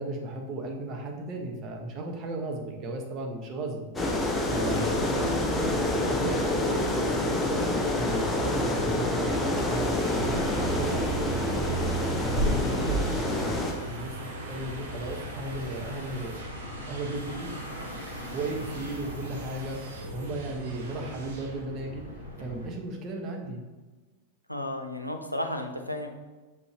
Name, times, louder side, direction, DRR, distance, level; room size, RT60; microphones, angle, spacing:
voice 1, 0.0-3.9 4.5-7.6 8.0-11.8 12.1-16.3 16.9-17.5 18.3-23.6, right 2 dB, 35° right, 2 dB, 1.0 m, -35 dB
sound 1, 4.0-13.7, left 1 dB, 10° left, 0.9 m, -27 dB
voice 2, 4.7-5.0 24.5-26.1, left 1 dB, 90° left, 4 dB, 0.6 m, -34 dB
sound 2, 9.7-21.6, right 3 dB, 60° right, 1.0 m, -46 dB
sound 3, 10.1-22.7, right 1 dB, 90° right, 1.2 m, -35 dB
6.3 x 5.4 x 2.8 m, 1.2 s
figure-of-eight pair, 90°, 0 cm